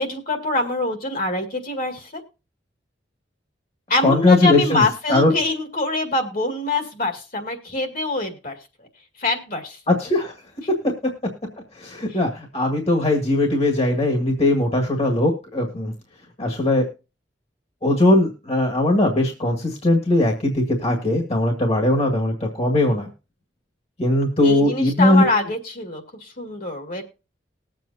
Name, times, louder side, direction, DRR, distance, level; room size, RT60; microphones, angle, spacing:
voice 1, 0.0-2.2 3.9-8.6 9.2-9.8 12.1-12.2 24.4-27.0, left 2 dB, 50° left, 5 dB, 2.1 m, -24 dB
voice 2, 4.0-4.8 5.1-5.3 9.9-10.3 10.8-10.9 11.8-15.9 16.4-16.9 17.8-23.1 24.0-25.3, left 1 dB, 35° left, 2 dB, 1.8 m, -19 dB
20.0 x 7.7 x 2.7 m, 0.31 s
head